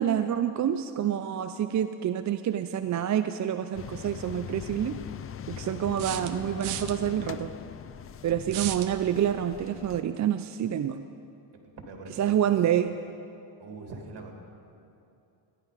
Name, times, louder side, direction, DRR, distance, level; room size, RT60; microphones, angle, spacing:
voice 1, 0.0-5.0 5.5-7.5 8.2-11.0 12.2-12.9, right 10 dB, 40° right, 10 dB, 0.4 m, -27 dB
sound 1, 3.7-10.0, left 9 dB, 30° left, 0.4 m, -41 dB
sound 2, 3.9-4.0 6.0-6.9 8.5-8.9, right 12 dB, 75° right, 0.8 m, -34 dB
voice 2, 11.5-12.3 13.6-14.3, right 4 dB, 55° right, 2 dB, 2.4 m, -43 dB
15.0 x 10.5 x 5.0 m, 2.7 s
cardioid pair, 80°, 49 cm